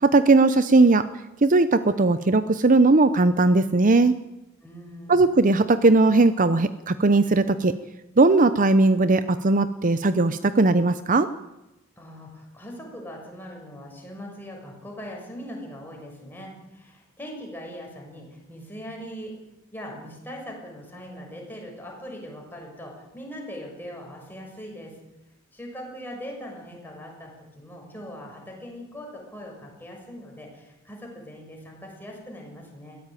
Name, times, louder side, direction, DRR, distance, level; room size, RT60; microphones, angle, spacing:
voice 1, 0.0-1.1 1.4-4.1 5.1-7.7 8.2-11.3, right 3 dB, 40° right, 13 dB, 0.7 m, -18 dB
voice 2, 4.6-5.4 12.0-19.3 19.7-24.9 25.5-33.0, equal, 10° left, -1 dB, 6.5 m, -40 dB
22.0 x 16.5 x 9.2 m, 0.96 s
head